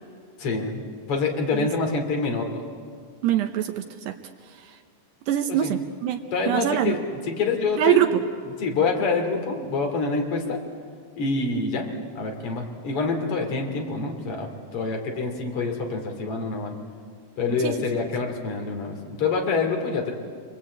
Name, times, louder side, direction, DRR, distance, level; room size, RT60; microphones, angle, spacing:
voice 1, 0.4-2.6 5.6-5.7 6.3-8.0 8.6-10.6 11.2-11.8 12.1-16.8 17.4-20.1, left 4 dB, 35° left, 3 dB, 2.7 m, -26 dB
voice 2, 3.2-4.1 5.3-7.0 7.8-8.2 17.6-17.7, right 11 dB, 75° right, 5 dB, 2.5 m, -23 dB
29.5 x 21.0 x 8.6 m, 2.1 s
omnidirectional pair, 5.7 m